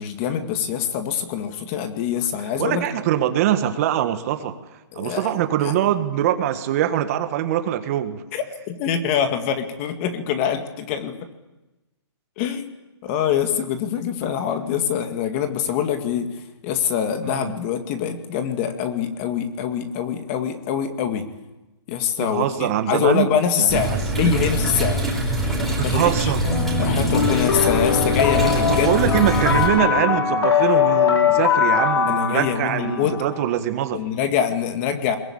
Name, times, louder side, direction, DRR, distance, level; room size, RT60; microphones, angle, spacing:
voice 1, 0.0-2.9 4.9-5.4 5.6-5.7 8.3-11.1 12.4-12.7 13.0-16.3 16.6-21.3 21.9-25.0 25.8-26.3 26.8-28.9 32.1-33.2 33.9-35.2, left 8 dB, 25° left, 7 dB, 2.2 m, -24 dB
voice 2, 2.6-4.6 5.0-8.2 17.2-17.5 22.2-23.3 23.6-23.8 24.1-24.3 25.7-26.4 28.7-34.0, right 11 dB, 35° right, 9 dB, 1.6 m, -23 dB
sound 1, 23.7-29.7, right 1 dB, ahead, 4.7 m, -24 dB
sound 2, 26.4-33.5, left 7 dB, 70° left, 4.0 m, -21 dB
22.0 x 22.0 x 8.7 m, 1.0 s
hypercardioid pair, 155°, 14 cm